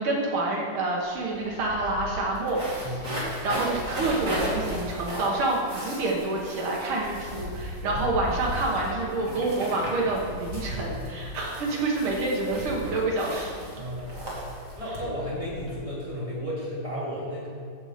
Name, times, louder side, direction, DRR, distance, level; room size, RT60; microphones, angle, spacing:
voice 1, 0.0-13.6, right 2 dB, 90° right, -3 dB, 1.1 m, -28 dB
sound 1, 1.0-1.1 1.3-15.8, equal, 25° right, 2.0 m, -35 dB
voice 2, 2.8-3.4 10.7-11.1 13.7-14.2 14.7-17.5, equal, 10° right, -9 dB, 2.4 m, -34 dB
14.5 x 5.4 x 5.1 m, 2.3 s
omnidirectional pair, 4.4 m